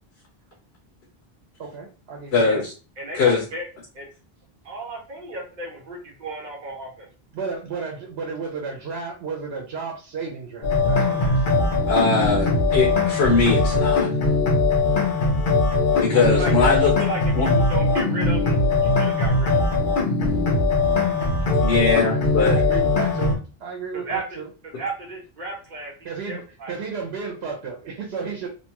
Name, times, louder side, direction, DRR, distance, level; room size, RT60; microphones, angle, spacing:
voice 1, 1.6-2.6 7.3-11.5 22.1-22.2 22.5-24.4 26.0-28.5, right 5 dB, 85° right, 0 dB, 0.9 m, -33 dB
voice 2, 2.3-2.7 3.1-3.4 11.9-14.1 15.9-16.9 17.3-17.5 21.6-22.6, left 4 dB, 85° left, -1 dB, 0.9 m, -21 dB
voice 3, 3.0-3.7 3.9-4.1 4.6-7.1 16.1-16.5 16.8-19.6 23.9-24.4 24.8-25.9 26.3-26.7, right 2 dB, 50° right, 0 dB, 1.0 m, -34 dB
sound 1, 10.6-23.4, left 3 dB, 60° left, 0.8 m, -20 dB
2.8 x 2.2 x 2.8 m, 0.35 s
omnidirectional pair, 1.0 m